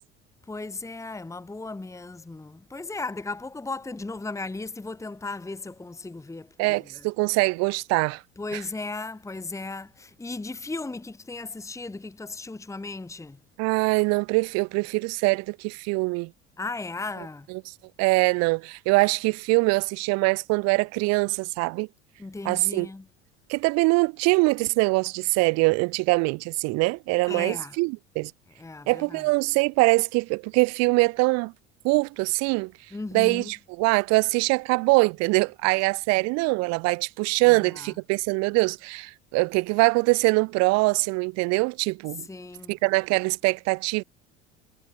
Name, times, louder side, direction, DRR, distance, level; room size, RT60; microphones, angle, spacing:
voice 1, 0.5-7.0 8.4-13.4 16.6-17.5 22.2-23.0 27.3-27.8 28.6-29.2 32.9-33.5 37.5-37.9 42.2-42.8, left 3 dB, 10° left, 1.8 m, -36 dB
voice 2, 6.6-8.2 8.5-8.6 13.6-16.3 17.5-17.6 18.0-21.9 22.4-22.9 23.5-28.3 28.9-31.5 31.8-32.7 33.1-42.3 42.7-44.0, right 27 dB, 50° right, 0.7 m, -23 dB
figure-of-eight pair, 70°, 34 cm